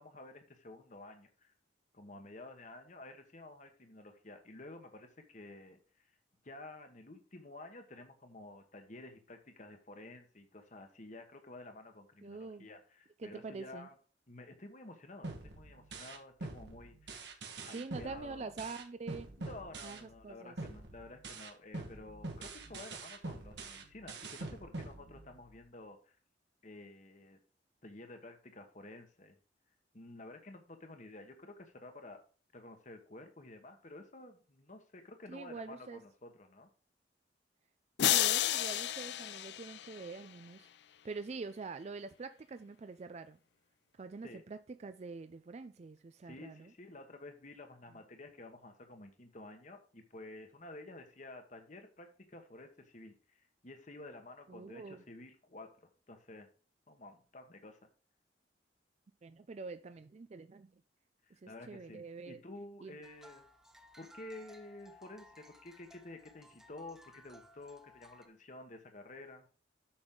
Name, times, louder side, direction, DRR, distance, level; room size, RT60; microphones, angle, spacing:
voice 1, 0.0-1.5 1.9-6.1 6.4-13.9 14.3-17.2 17.6-18.5 19.4-26.1 26.6-27.4 27.8-29.4 29.9-32.2 32.5-36.7 44.2-44.4 46.2-56.5 56.9-57.8 61.2-63.5 64.0-69.5, left 2 dB, 45° left, 1.3 m, -51 dB
voice 2, 12.2-12.7 13.2-13.9 17.7-19.3 19.8-20.6 35.3-36.0 38.0-40.7 41.0-43.4 43.9-46.7 54.5-55.0 59.2-60.7 61.3-62.4 62.8-63.0, right 4 dB, 40° right, 0.4 m, -45 dB
sound 1, 15.2-20.3 20.6-25.6, right 2 dB, 75° right, 1.6 m, -45 dB
sound 2, 38.0-40.3, left 12 dB, 70° left, 0.4 m, -32 dB
sound 3, 63.0-68.3, equal, 5° right, 0.8 m, -59 dB
8.7 x 6.2 x 3.8 m
head